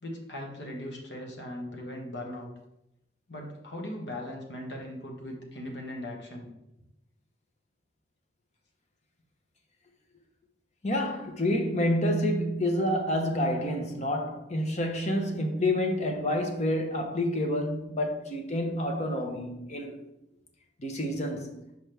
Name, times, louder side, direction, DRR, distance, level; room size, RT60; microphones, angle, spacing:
voice 1, 0.0-2.5 3.3-6.5, left 1 dB, 90° left, 1.4 m, -39 dB
voice 2, 10.8-19.9 20.8-21.6, left 1 dB, 40° left, 0.9 m, -28 dB
6.0 x 5.1 x 3.4 m
head